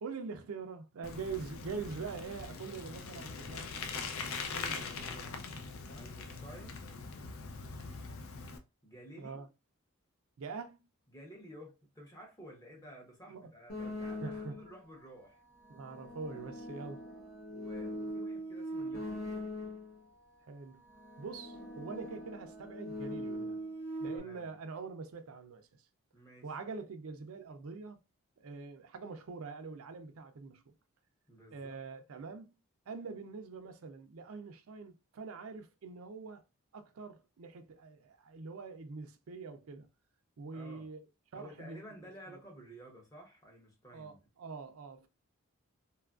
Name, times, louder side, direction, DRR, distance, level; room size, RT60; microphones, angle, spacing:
voice 1, 0.0-4.1 4.5-5.2 9.2-9.5 10.4-10.8 13.3-13.5 14.2-14.5 15.7-17.0 20.5-20.8 21.2-23.6 24.0-25.7 26.4-28.0 28.4-30.6 31.5-32.6 32.9-36.4 36.7-39.9 40.4-41.1 41.3-42.1 43.9-45.1, right 4 dB, 70° right, 0.4 m, -44 dB
Bicycle, 1.0-8.6, left 4 dB, 65° left, 0.4 m, -42 dB
voice 2, 4.6-5.3 6.0-6.8 8.8-9.4 11.1-15.4 17.5-19.3 24.0-24.6 26.1-26.5 31.3-31.8 40.5-40.9 41.3-44.2, right 1 dB, 15° left, 0.7 m, -53 dB
sound 1, 13.7-14.8 15.5-20.0 20.8-24.2, equal, 45° left, 0.9 m, -41 dB
2.8 x 2.4 x 2.3 m
head